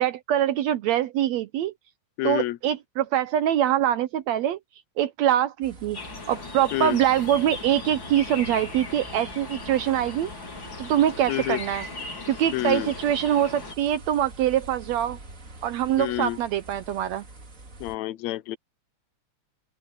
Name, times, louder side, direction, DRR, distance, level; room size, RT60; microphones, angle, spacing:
voice 1, 0.0-1.7 2.2-4.6 5.0-6.0 6.3-10.3 10.8-11.9 12.3-15.2 15.6-17.3, right 11 dB, 75° right, 1.8 m, -24 dB
voice 2, 2.2-2.6 6.7-7.0 11.3-11.6 12.5-12.9 16.0-16.4 17.8-18.6, left 16 dB, 75° left, 1.8 m, -28 dB
sound 1, 5.6-18.0, right 2 dB, 30° right, 2.4 m, -46 dB
sound 2, 5.9-13.8, left 3 dB, 40° left, 4.8 m, -38 dB
open air
omnidirectional pair, 3.5 m